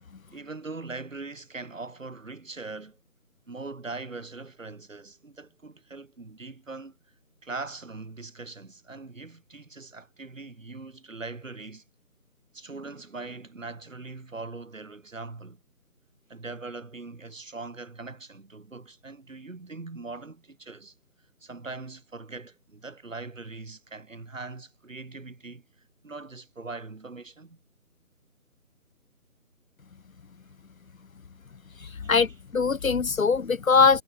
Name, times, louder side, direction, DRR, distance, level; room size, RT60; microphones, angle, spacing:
voice 1, 0.3-3.0 3.5-7.0 7.4-11.8 12.5-15.6 16.3-20.9 21.4-25.6 26.0-27.6 31.8-32.1 32.8-32.9, right 3 dB, 60° right, 6.0 m, -41 dB
voice 2, 32.1-34.0, left 5 dB, 65° left, 0.8 m, -21 dB
figure-of-eight pair, 160°, 44 cm